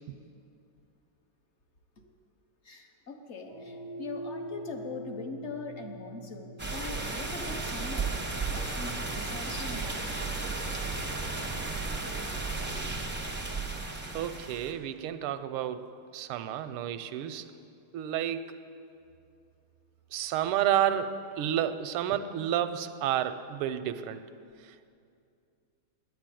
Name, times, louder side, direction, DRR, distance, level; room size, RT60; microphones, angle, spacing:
voice 1, 2.6-8.2 8.4-10.1, left 3 dB, 45° left, 4 dB, 1.0 m, -42 dB
sound 1, 3.4-11.9, equal, 60° left, 3.7 m, -45 dB
sound 2, 6.6-14.7, right 3 dB, 15° right, 0.4 m, -34 dB
voice 2, 14.1-15.9 16.1-17.5 17.9-18.6 20.1-24.2 24.6-24.9, right 10 dB, 85° right, 11 dB, 1.5 m, -30 dB
10.5 x 10.0 x 9.1 m, 2.4 s
omnidirectional pair, 2.4 m